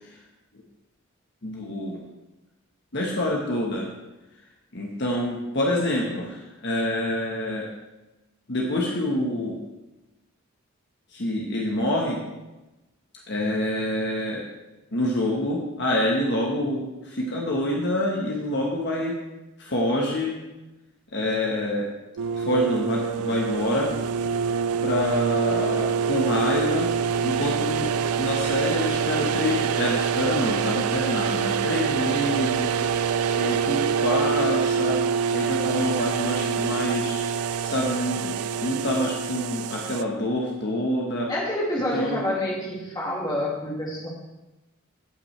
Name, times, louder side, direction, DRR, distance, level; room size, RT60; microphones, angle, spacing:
voice 1, 1.4-2.0 2.9-3.9 4.7-7.7 8.5-9.6 11.1-12.2 13.3-14.4 14.9-19.2 19.6-20.3 21.1-21.9 22.3-23.9 24.8-26.9 27.2-35.0 35.3-37.2 37.6-38.3 38.6-41.3 41.9-42.2, left 1 dB, 50° left, -2 dB, 1.2 m, -26 dB
sound 1, 22.2-40.0, right 6 dB, 85° right, 0.4 m, -25 dB
voice 2, 41.3-44.1, left 1 dB, 20° left, -4 dB, 2.1 m, -28 dB
15.5 x 6.0 x 3.3 m, 1.0 s
head